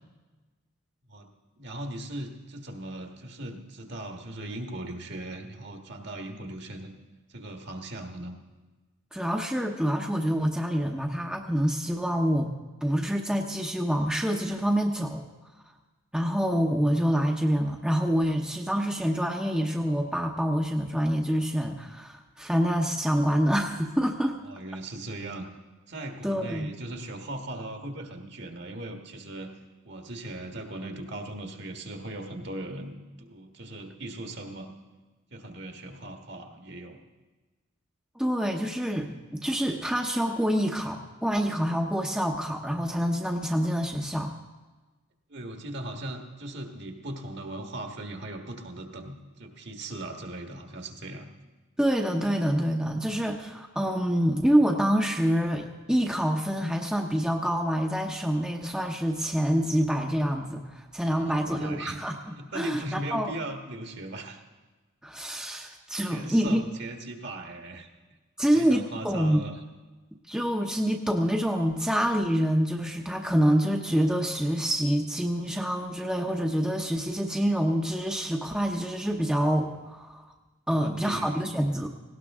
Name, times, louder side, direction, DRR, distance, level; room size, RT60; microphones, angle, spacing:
voice 1, 1.6-6.9 7.3-8.4 24.5-25.5 25.9-29.5 29.8-34.7 35.3-37.0 45.3-51.3 61.0-62.0 62.4-64.4 66.1-67.9 68.5-69.6 80.7-81.4, right 1 dB, 55° right, 4 dB, 1.6 m, -38 dB
voice 2, 9.1-12.5 12.8-15.2 16.1-24.4 26.2-26.7 38.2-44.3 51.8-63.3 65.0-66.6 68.4-69.4 70.3-80.3 80.7-81.9, equal, 5° right, 1 dB, 0.8 m, -26 dB
18.0 x 17.5 x 3.6 m, 1.2 s
head